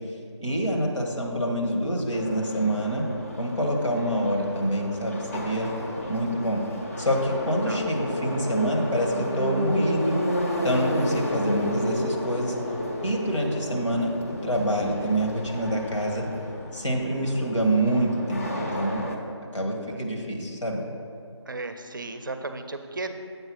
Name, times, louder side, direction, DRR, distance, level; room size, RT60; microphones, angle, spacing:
voice 1, 0.4-3.1 3.4-5.7 6.1-6.6 7.0-10.2 10.6-12.5 13.0-16.2 16.7-19.0 19.5-20.8, right 1 dB, 85° left, 0 dB, 1.7 m, -26 dB
Subway metro underground, 2.1-19.2, left 1 dB, 30° left, 0.6 m, -32 dB
voice 2, 5.8-6.3 7.6-7.8 19.6-20.1 21.5-23.1, right 3 dB, 45° right, 8 dB, 0.5 m, -36 dB
7.9 x 4.6 x 5.9 m, 2.4 s
figure-of-eight pair, 160°, 15 cm